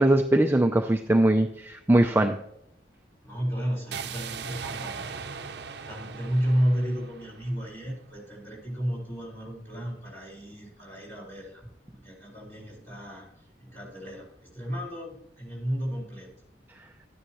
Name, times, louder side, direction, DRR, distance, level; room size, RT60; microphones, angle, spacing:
voice 1, 0.0-2.4, right 1 dB, 10° right, 4 dB, 0.5 m, -21 dB
voice 2, 3.2-5.5 5.8-11.6 11.9-13.3 13.6-16.3, equal, 15° left, -2 dB, 4.6 m, -32 dB
sound 1, 3.9-8.0, right 6 dB, 65° right, 0.7 m, -39 dB
12.5 x 9.8 x 3.0 m, 0.76 s
head